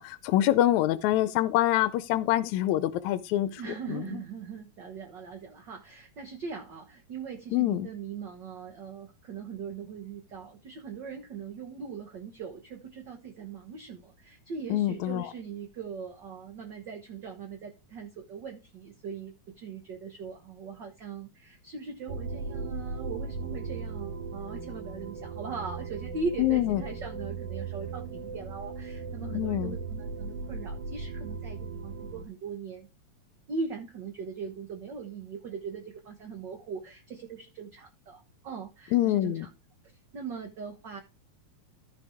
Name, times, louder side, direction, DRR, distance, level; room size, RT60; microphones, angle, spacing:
voice 1, 0.0-3.6 3.9-4.2 7.5-7.9 14.7-15.3 26.4-26.8 29.2-29.8 38.9-39.5, left 14 dB, 80° left, 2.0 m, -26 dB
voice 2, 3.5-32.9 33.5-39.5 40.1-41.0, right 5 dB, 50° right, 1.5 m, -40 dB
sound 1, 22.1-32.2, right 4 dB, 85° right, 3.1 m, -37 dB
15.0 x 5.1 x 3.5 m
omnidirectional pair, 3.3 m